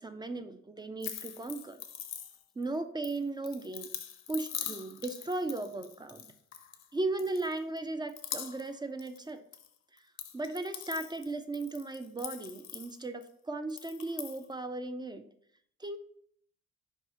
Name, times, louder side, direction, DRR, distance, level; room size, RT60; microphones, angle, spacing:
voice 1, 0.0-1.8 2.6-3.9 4.3-6.3 6.9-9.4 9.9-10.0 10.3-15.2 15.8-16.0, right 2 dB, 15° right, 9 dB, 0.3 m, -36 dB
sound 1, 1.0-2.6 3.0-6.9 7.2-7.8 8.1-8.7 9.0-9.7 10.0-13.3 13.7-14.4, left 9 dB, 60° left, 0.6 m, -43 dB
5.5 x 2.3 x 4.1 m, 0.67 s
cardioid pair, 90°, 30 cm